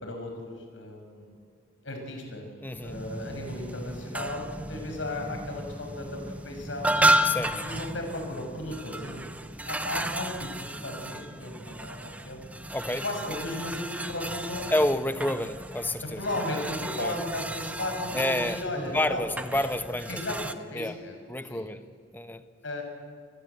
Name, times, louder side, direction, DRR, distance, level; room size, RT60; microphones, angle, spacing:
voice 1, 0.0-1.4 1.8-2.5 2.8-9.2 9.6-12.0 12.2-12.4 13.0-14.7 16.0-19.3 20.1-21.2 21.5-21.7 22.6-22.8, left 1 dB, 85° left, 3 dB, 6.0 m, -35 dB
voice 2, 2.6-3.0 7.2-7.6 12.7-13.0 13.3-13.4 14.7-16.2 17.0-17.1 18.1-20.2 20.7-21.0 21.3-21.8 22.1-22.4, left 1 dB, 10° left, 10 dB, 1.0 m, -29 dB
sound 1, 2.7-20.5, right 1 dB, 5° right, 0.8 m, -33 dB
29.0 x 20.5 x 8.2 m, 2.1 s
head